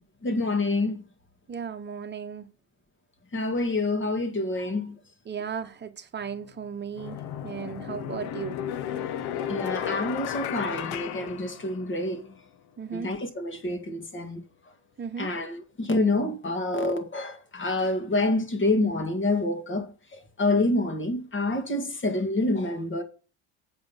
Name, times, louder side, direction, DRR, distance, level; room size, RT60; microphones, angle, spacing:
voice 1, 0.2-1.0 3.3-5.0 7.7-7.8 9.5-12.3 12.9-14.4 15.2-23.0, left 2 dB, 30° left, 2.0 m, -27 dB
voice 2, 1.5-2.5 5.3-8.6 12.8-13.1 15.0-15.3, right 7 dB, 25° right, 1.2 m, -36 dB
sound 1, 6.2-6.3 7.0-12.1, left 10 dB, 75° left, 1.0 m, -34 dB
7.9 x 5.2 x 7.1 m
cardioid pair, 120°, 39 cm